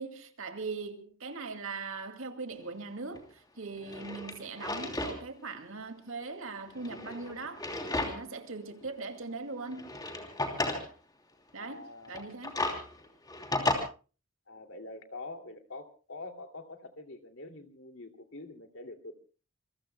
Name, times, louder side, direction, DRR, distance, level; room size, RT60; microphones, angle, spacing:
voice 1, 0.0-7.7 8.1-9.9 11.5-11.8 12.1-12.5, right 4 dB, 70° right, 2.4 m, -40 dB
Drawer open or close, 3.1-3.2 3.8-5.2 5.5-5.6 6.7-8.4 8.8-8.9 9.7-10.9 12.0-13.8, left 2 dB, 20° left, 3.0 m, -34 dB
voice 2, 11.6-12.4 14.5-19.1, left 2 dB, 65° left, 2.6 m, -45 dB
27.0 x 23.0 x 2.2 m
head